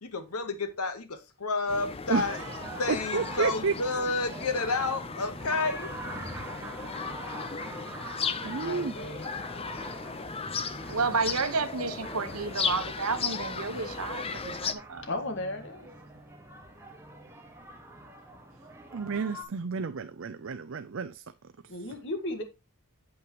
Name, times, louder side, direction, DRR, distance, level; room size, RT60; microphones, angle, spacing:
voice 1, 0.0-2.4 2.8-5.9, left 3 dB, 85° left, 1.2 m, -30 dB
sound 1, 1.7-14.7, left 5 dB, 25° left, 0.6 m, -36 dB
sound 2, 2.0-19.4, right 2 dB, 10° right, 1.5 m, -45 dB
voice 2, 2.1-3.7 8.4-8.9 18.9-21.2 21.8-21.9, right 5 dB, 60° right, 0.5 m, -31 dB
voice 3, 8.6-9.3 15.0-15.9 21.7-22.4, left 2 dB, 55° left, 1.6 m, -35 dB
voice 4, 10.9-15.0, right 4 dB, 80° right, 1.2 m, -31 dB
8.6 x 7.8 x 3.0 m
head